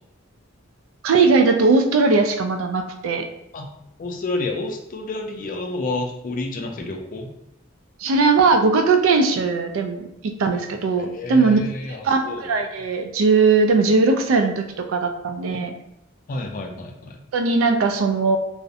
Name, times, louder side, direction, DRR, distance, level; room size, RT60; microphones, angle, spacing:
voice 1, 1.0-3.3 8.0-11.6 12.0-15.7 17.3-18.4, right 4 dB, 85° right, 6 dB, 0.3 m, -19 dB
voice 2, 4.0-7.3 11.0-12.5 16.3-17.2, left 2 dB, 45° left, 3 dB, 0.4 m, -29 dB
2.4 x 2.0 x 2.6 m, 0.81 s
head